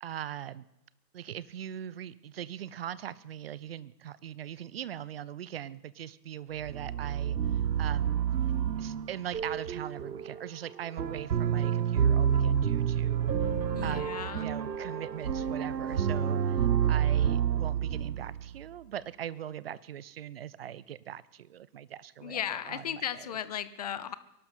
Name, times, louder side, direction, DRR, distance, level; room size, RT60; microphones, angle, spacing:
voice 1, 0.0-0.6 1.1-8.2 8.8-13.3 13.8-23.4, right 10 dB, 40° right, 19 dB, 0.5 m, -41 dB
sound 1, 6.6-18.6, right 8 dB, 90° right, 0.7 m, -29 dB
voice 2, 13.7-14.5 22.2-24.1, left 9 dB, 25° left, 14 dB, 0.5 m, -36 dB
23.0 x 12.0 x 4.3 m, 0.84 s
figure-of-eight pair, 120°, 50 cm